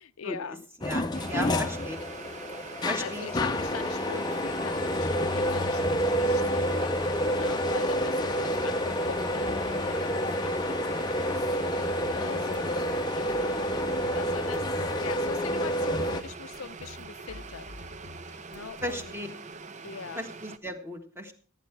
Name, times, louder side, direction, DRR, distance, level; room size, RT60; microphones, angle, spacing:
voice 1, 0.0-0.6 1.3-1.8 3.0-10.1 10.4-11.4 12.1-13.6 13.9-14.6 15.0-17.7 18.5-19.2 19.8-20.3, left 6 dB, 80° left, 13 dB, 0.5 m, -42 dB
sound 1, 0.8-16.2, equal, 20° left, 0.6 m, -28 dB
voice 2, 0.8-2.0 2.8-3.3 18.8-19.3 20.1-21.3, equal, 10° right, 6 dB, 1.4 m, -35 dB
sound 2, 1.1-20.6, right 4 dB, 35° right, 0.5 m, -44 dB
sound 3, 11.3-19.5, left 2 dB, 55° right, 2.7 m, -50 dB
15.5 x 9.1 x 4.5 m, 0.42 s
head